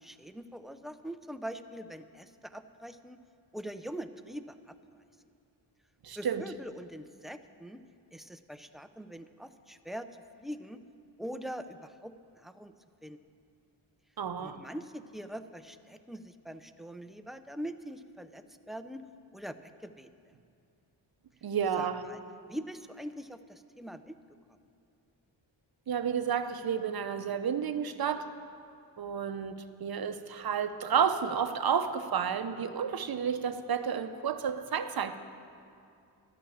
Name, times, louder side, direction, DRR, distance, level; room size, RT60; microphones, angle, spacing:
voice 1, 0.0-3.2 3.5-4.8 6.2-7.8 8.1-10.1 10.4-10.8 11.2-12.7 13.0-13.2 14.4-19.0 19.3-20.1 21.8-22.2 22.5-24.2, equal, ahead, 9 dB, 0.5 m, -43 dB
voice 2, 6.0-6.4 14.2-14.6 21.4-22.0 25.9-28.3 29.0-35.2, right 7 dB, 50° right, 10 dB, 0.8 m, -31 dB
13.0 x 6.1 x 8.6 m, 2.5 s
cardioid pair, 60°, 46 cm